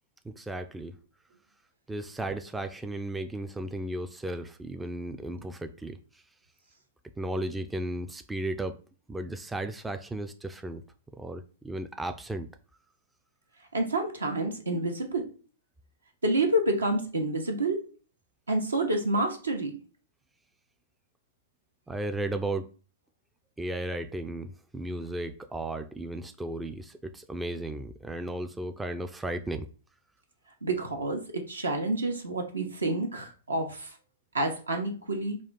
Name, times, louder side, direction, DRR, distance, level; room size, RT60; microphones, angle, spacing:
voice 1, 0.2-1.0 1.9-6.0 7.2-8.8 9.1-10.8 11.1-12.5 21.9-22.7 23.6-29.7, right 1 dB, 10° right, 0.3 m, -35 dB
voice 2, 13.7-15.3 16.2-17.8 18.5-19.7 30.6-33.9 34.3-35.4, right 1 dB, 85° right, 0.9 m, -28 dB
3.6 x 2.3 x 4.2 m
figure-of-eight pair, 110°, 0 cm